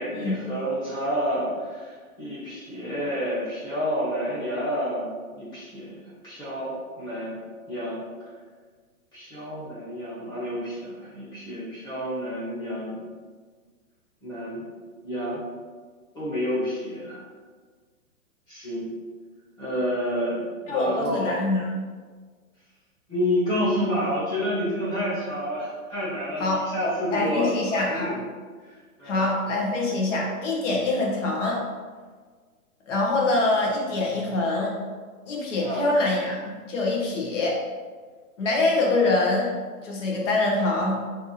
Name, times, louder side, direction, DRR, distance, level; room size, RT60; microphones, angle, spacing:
voice 1, 0.0-7.4 7.7-8.0 9.1-13.0 14.2-14.6 15.0-15.4 16.1-17.2 18.5-18.8 19.6-20.4 20.7-21.4 23.1-28.2 28.6-29.3 35.6-35.9, equal, 10° left, -10 dB, 1.1 m, -29 dB
voice 2, 20.7-21.7 26.4-28.2 29.0-31.6 32.9-34.7 35.3-37.6 38.4-39.5 39.8-41.0, left 2 dB, 55° left, -2 dB, 1.1 m, -24 dB
3.5 x 2.7 x 4.0 m, 1.5 s
hypercardioid pair, 155°, 44 cm